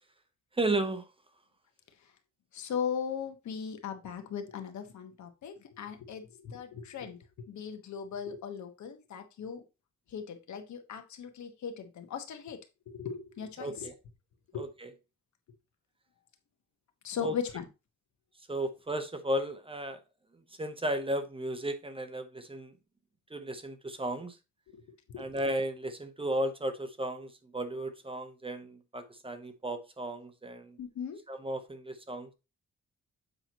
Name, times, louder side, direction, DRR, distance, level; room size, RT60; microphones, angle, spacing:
voice 1, 0.6-1.0 13.6-13.9 14.5-14.9 17.2-17.3 18.5-20.0 20.6-22.7 23.3-24.4 25.2-30.8 31.3-32.3, right 1 dB, 20° right, 0.8 m, -34 dB
voice 2, 2.5-7.2 7.5-9.6 10.1-12.6 12.9-13.9 14.5-14.6 17.0-17.6 25.1-25.4 30.8-31.2, left 7 dB, 75° left, 1.3 m, -38 dB
7.9 x 5.6 x 3.0 m
cardioid pair, 120°, 29 cm